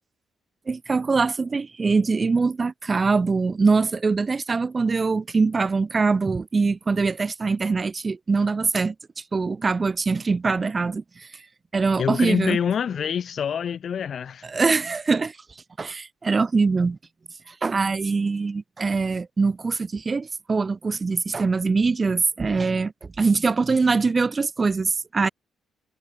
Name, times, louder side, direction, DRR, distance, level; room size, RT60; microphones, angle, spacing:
voice 1, 0.7-8.9 9.3-11.3 11.7-12.6 14.5-15.4 15.8-17.0 17.6-25.3, right 4 dB, 30° right, 2.5 m, -23 dB
voice 2, 12.0-14.5, left 8 dB, 55° left, 6.8 m, -26 dB
cardioid pair, 90°, 0 cm